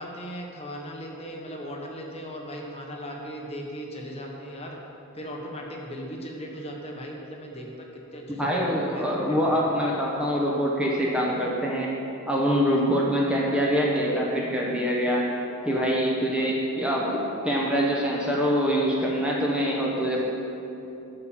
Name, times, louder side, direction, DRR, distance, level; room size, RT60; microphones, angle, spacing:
voice 1, 0.0-4.8 5.1-7.9 8.1-9.7, equal, 25° left, -1 dB, 1.0 m, -37 dB
voice 2, 8.4-11.9 12.3-15.2 15.6-20.2, equal, 5° right, -4 dB, 0.9 m, -24 dB
11.5 x 4.3 x 7.2 m, 2.9 s
head